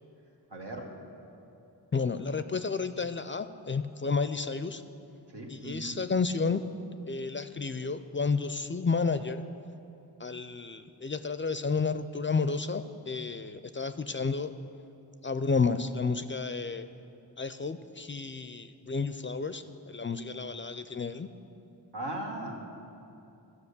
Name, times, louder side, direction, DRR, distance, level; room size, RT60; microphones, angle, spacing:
voice 1, 0.5-0.9 5.3-6.0 21.9-22.6, right 1 dB, 85° right, 0 dB, 1.4 m, -38 dB
voice 2, 1.9-4.8 5.5-6.6 7.1-9.4 10.2-14.5 15.2-16.9 17.4-21.3, left 4 dB, 30° left, 11 dB, 0.4 m, -31 dB
13.5 x 5.2 x 6.7 m, 2.8 s
wide cardioid pair, 50°, 41 cm